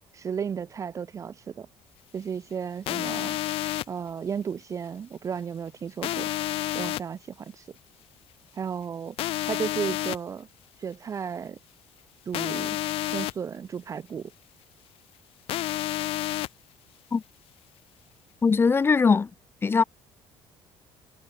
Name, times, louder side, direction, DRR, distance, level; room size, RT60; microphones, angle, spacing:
voice 1, 0.1-1.7 2.1-3.4 3.9-6.3 6.7-7.6 8.5-9.2 9.5-10.5 10.8-11.6 12.3-12.8 13.1-14.3, right 7 dB, 30° right, 0.4 m, -34 dB
sound 1, 2.9-3.8 6.0-7.0 9.2-10.2 12.3-13.3 15.5-16.5, left 15 dB, 65° left, 0.8 m, -29 dB
voice 2, 18.4-19.3 19.6-19.8, left 5 dB, 20° left, 0.6 m, -20 dB
cardioid pair, 120°, 10 cm